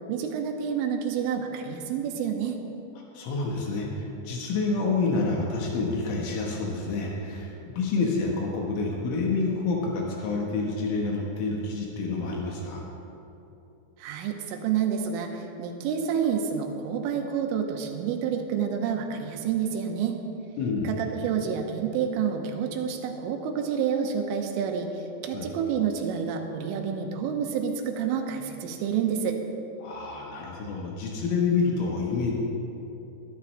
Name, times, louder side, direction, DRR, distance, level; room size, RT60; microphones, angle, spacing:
voice 1, 0.1-2.6 14.0-20.2 20.8-29.4, right 7 dB, 85° right, 3 dB, 3.6 m, -29 dB
voice 2, 3.2-12.8 20.6-20.9 25.3-25.5 29.8-32.3, left 3 dB, 80° left, -1 dB, 3.8 m, -28 dB
21.5 x 12.5 x 3.2 m, 2.9 s
omnidirectional pair, 5.8 m